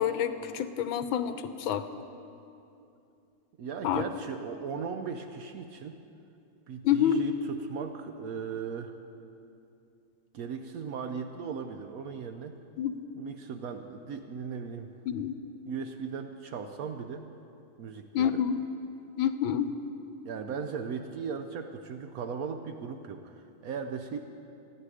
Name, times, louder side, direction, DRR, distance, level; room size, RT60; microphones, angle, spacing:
voice 1, 0.0-1.9 3.8-4.0 6.8-7.2 12.8-13.0 15.1-15.4 18.1-18.6 19.2-19.7, left 9 dB, 75° left, 11 dB, 1.4 m, -27 dB
voice 2, 3.6-6.0 6.7-9.0 10.3-12.6 13.2-14.9 15.7-17.2 17.8-18.4 20.2-24.2, right 6 dB, 85° right, 6 dB, 0.7 m, -37 dB
26.0 x 10.0 x 4.9 m, 2.6 s
omnidirectional pair, 2.4 m